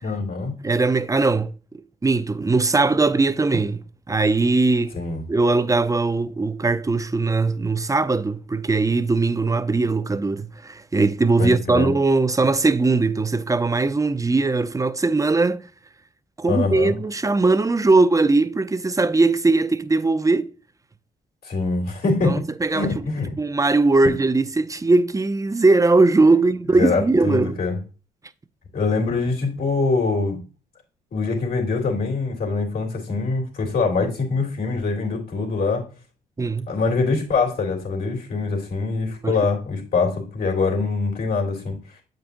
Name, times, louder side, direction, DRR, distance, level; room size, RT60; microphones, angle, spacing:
voice 1, 0.0-0.5 4.9-5.2 11.4-11.9 16.5-17.0 21.4-22.4 22.7-23.3 26.7-27.8 28.7-30.4 31.1-35.8 36.7-41.8, left 4 dB, 65° left, 3.3 m, -24 dB
voice 2, 0.6-4.9 5.3-15.6 16.4-20.5 22.2-22.9 23.4-27.6 36.4-36.7 39.2-39.4, right 3 dB, 20° right, 0.6 m, -20 dB
8.2 x 5.2 x 2.6 m
supercardioid pair, 55°, 17 cm